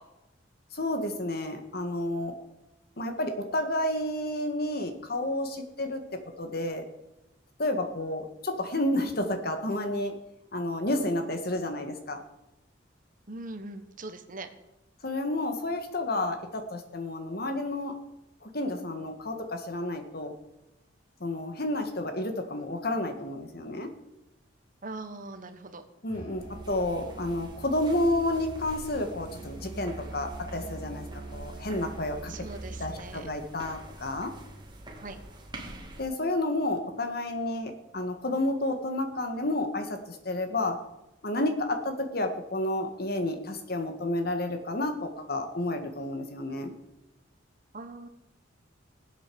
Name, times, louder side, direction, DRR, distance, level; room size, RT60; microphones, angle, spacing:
voice 1, 0.7-2.4 3.0-6.8 7.6-10.2 10.5-12.2 15.0-18.0 18.4-20.4 21.2-23.9 26.0-31.1 31.3-32.3 32.8-34.3 36.0-40.8 41.2-46.7, left 1 dB, 55° left, 6 dB, 1.9 m, -30 dB
voice 2, 13.3-14.5 24.8-25.8 32.3-33.3 34.9-35.2 47.7-48.1, right 2 dB, 45° right, 8 dB, 1.3 m, -41 dB
Musical instrument, 26.1-33.1, right 2 dB, 20° left, 7.2 m, -43 dB
sound 1, 26.4-36.0, right 1 dB, 25° right, 2.2 m, -47 dB
18.5 x 8.3 x 7.1 m, 0.93 s
head